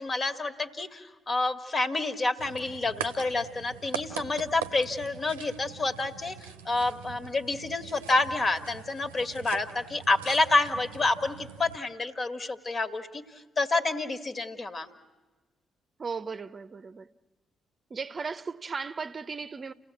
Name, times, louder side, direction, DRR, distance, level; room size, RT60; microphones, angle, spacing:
voice 1, 0.0-13.2 13.6-14.9, left 2 dB, 40° left, 1.9 m, -28 dB
sound 1, 2.4-11.8, right 9 dB, 85° right, 0.6 m, -42 dB
voice 2, 16.0-17.1 17.9-19.7, right 5 dB, 40° right, 0.7 m, -36 dB
29.5 x 16.0 x 8.4 m
hypercardioid pair, 40°, 0 cm